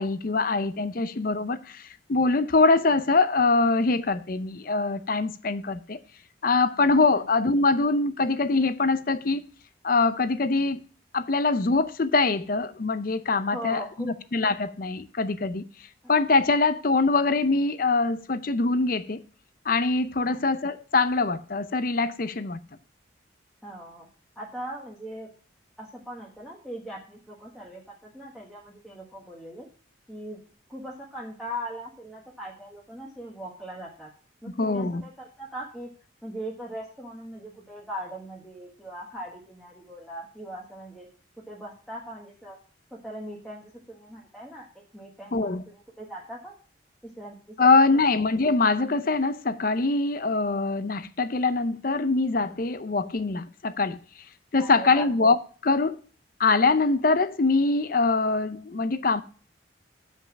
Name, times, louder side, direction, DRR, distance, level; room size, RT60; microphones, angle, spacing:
voice 1, 0.0-1.8 2.1-6.0 6.4-9.4 9.8-10.8 11.1-15.6 16.1-19.2 19.7-22.6 34.6-35.0 45.3-45.6 47.6-54.0 54.5-55.4 55.6-56.0 56.4-59.2, left 3 dB, 45° left, 0.6 m, -23 dB
voice 2, 7.1-7.5 13.5-14.1 20.2-20.5 23.6-24.1 24.4-25.3 25.8-29.7 30.1-30.4 30.7-34.1 34.4-35.9 36.2-41.1 41.4-42.6 42.9-46.5 47.2-47.7 47.9-48.0 54.6-55.1, equal, ahead, 1.3 m, -40 dB
7.8 x 5.5 x 5.9 m
head